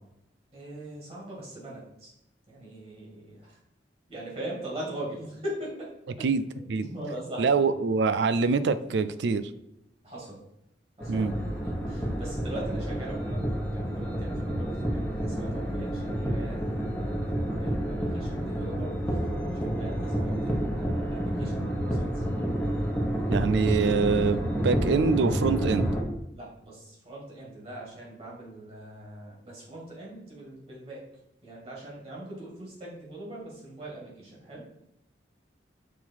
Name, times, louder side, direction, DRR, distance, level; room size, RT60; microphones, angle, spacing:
voice 1, 0.5-2.1 2.5-3.6 4.1-5.9 6.2-6.3 6.5-7.6 10.0-10.4 11.0-22.6 26.3-31.0 31.4-34.7, right 1 dB, 35° right, -4 dB, 2.2 m, -41 dB
voice 2, 7.4-9.4 11.1-11.3 23.3-25.9, right 4 dB, 75° right, 13 dB, 0.4 m, -24 dB
sound 1, 11.0-26.0, equal, 5° left, 1.0 m, -29 dB
6.2 x 3.6 x 4.5 m, 0.85 s
head